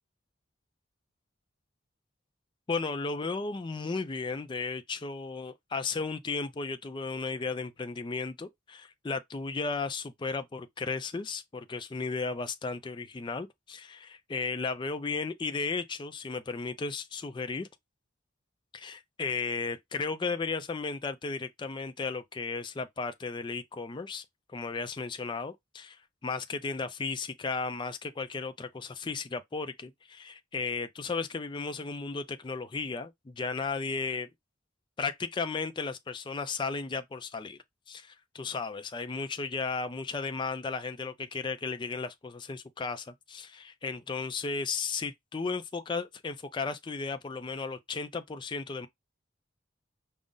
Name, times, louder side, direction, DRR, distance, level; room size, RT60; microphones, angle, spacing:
voice 1, 2.7-17.7 18.7-24.2 24.5-34.3 35.0-37.6 37.9-48.9, left 4 dB, 25° left, 0.3 m, -35 dB
5.1 x 2.0 x 3.7 m
head